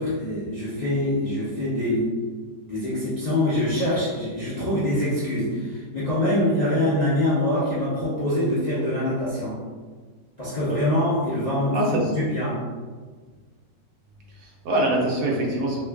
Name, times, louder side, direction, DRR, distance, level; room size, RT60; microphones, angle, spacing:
voice 1, 0.0-2.1 2.7-9.5 10.4-12.6, left 1 dB, 40° left, -11 dB, 0.5 m, -24 dB
voice 2, 11.7-12.1 14.3-15.8, right 1 dB, 70° right, -2 dB, 1.1 m, -24 dB
3.0 x 2.3 x 3.3 m, 1.5 s
omnidirectional pair, 1.8 m